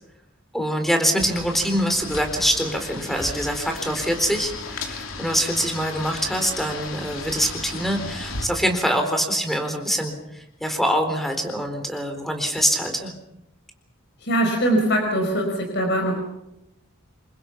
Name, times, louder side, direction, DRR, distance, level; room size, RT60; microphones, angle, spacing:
voice 1, 0.5-13.1, equal, ahead, 5 dB, 4.0 m, -24 dB
sound 1, 1.2-8.5, left 3 dB, 80° left, 3.1 m, -35 dB
voice 2, 14.2-16.2, right 1 dB, 55° left, 3 dB, 5.1 m, -22 dB
27.5 x 24.0 x 5.9 m, 0.86 s
head